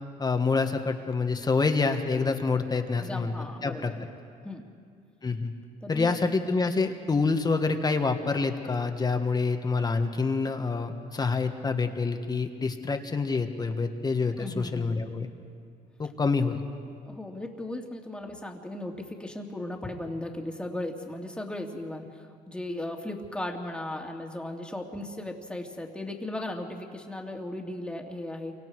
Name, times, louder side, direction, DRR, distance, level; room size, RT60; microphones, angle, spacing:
voice 1, 0.2-3.3 3.6-3.9 5.2-5.5 5.9-15.3 16.0-16.6, left 4 dB, 25° left, 6 dB, 1.5 m, -27 dB
voice 2, 2.9-4.0 4.4-4.7 5.8-6.1 14.4-14.9 17.0-28.5, left 1 dB, 5° left, 2 dB, 2.3 m, -36 dB
28.5 x 24.5 x 4.8 m, 2.2 s
cardioid pair, 110°, 17 cm